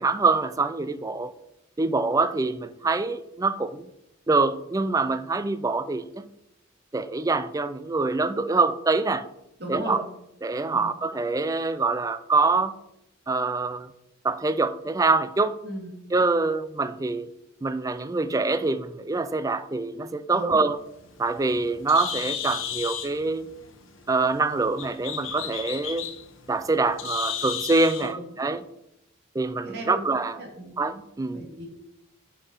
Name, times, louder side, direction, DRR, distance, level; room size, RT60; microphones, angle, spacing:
voice 1, 0.0-1.3 1.8-3.9 4.3-6.3 6.9-9.3 9.7-10.0 10.4-12.8 13.3-13.9 14.2-15.5 16.1-17.3 17.6-20.8 21.2-23.5 24.1-26.1 26.5-28.6 29.4-30.4 30.8-31.4, right 3 dB, 15° right, 0.3 m, -25 dB
voice 2, 9.6-10.0 10.7-10.9 15.6-16.0 20.3-20.6 28.0-28.4 29.6-30.0 30.4-30.7 31.3-31.7, right 1 dB, 50° right, 2.3 m, -36 dB
Bird, 20.8-28.1, left 8 dB, 70° left, 1.0 m, -35 dB
6.8 x 5.4 x 5.6 m
head